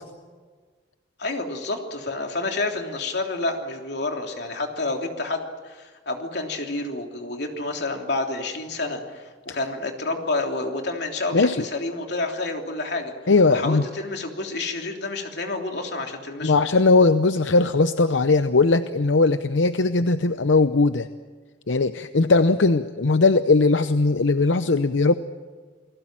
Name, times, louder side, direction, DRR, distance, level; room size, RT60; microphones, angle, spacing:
voice 1, 1.2-13.1 13.5-16.5, left 2 dB, 60° left, 3 dB, 3.3 m, -29 dB
voice 2, 13.3-13.8 16.4-21.1 21.7-25.1, left 3 dB, 85° left, 10 dB, 0.8 m, -19 dB
29.5 x 20.0 x 7.6 m, 1.5 s
head